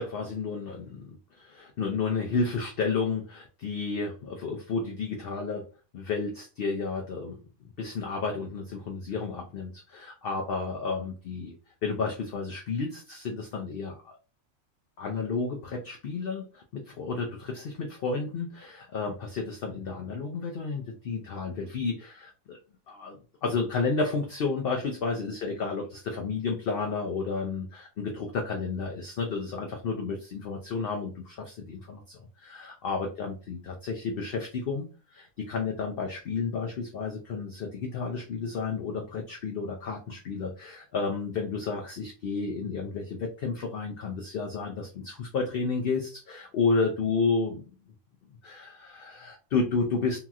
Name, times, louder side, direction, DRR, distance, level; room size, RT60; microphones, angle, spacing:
voice 1, 0.0-5.6 5.9-7.4 7.8-11.5 11.8-14.1 15.0-22.6 22.9-34.9 35.1-47.6 48.4-50.2, left 4 dB, 65° left, 2 dB, 0.6 m, -31 dB
2.9 x 2.8 x 2.3 m, 0.35 s
omnidirectional pair, 1.4 m